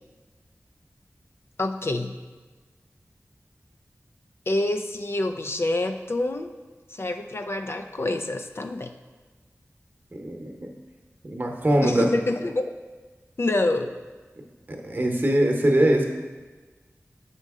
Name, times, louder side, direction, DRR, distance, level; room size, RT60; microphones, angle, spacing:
voice 1, 1.6-2.2 4.5-6.5 6.9-8.9 11.8-12.7 13.4-13.9, left 2 dB, 50° left, 7 dB, 0.4 m, -27 dB
voice 2, 10.1-10.7 11.2-12.1 14.7-16.1, right 1 dB, 40° right, 2 dB, 0.9 m, -22 dB
6.5 x 5.1 x 3.6 m, 1.3 s
wide cardioid pair, 50°, 5 cm